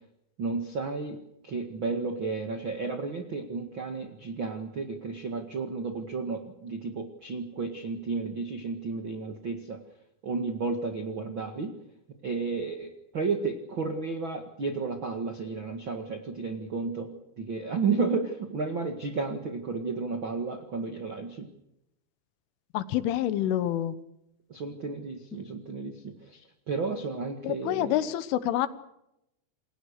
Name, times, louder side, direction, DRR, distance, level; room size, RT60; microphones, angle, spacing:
voice 1, 0.4-9.8 10.2-11.7 12.2-17.1 17.4-21.5 24.5-28.0, right 4 dB, 80° right, 5 dB, 1.1 m, -32 dB
voice 2, 22.7-24.0 25.3-25.4 27.4-28.7, left 12 dB, 80° left, 13 dB, 3.6 m, -27 dB
28.5 x 22.0 x 6.7 m, 0.84 s
omnidirectional pair, 5.6 m